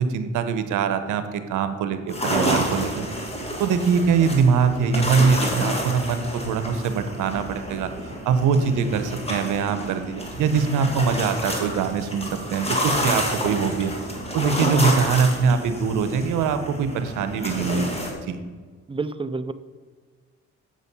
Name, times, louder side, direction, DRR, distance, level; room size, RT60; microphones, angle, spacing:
voice 1, 0.0-3.1 3.6-7.9 8.2-13.9 14.3-18.4, right 5 dB, 85° right, 10 dB, 0.9 m, -23 dB
sound 1, 2.1-18.1, equal, 20° left, 1.9 m, -29 dB
voice 2, 18.9-19.5, right 3 dB, 20° right, 12 dB, 0.5 m, -28 dB
7.9 x 6.4 x 5.5 m, 1.5 s
cardioid pair, 90°, 30 cm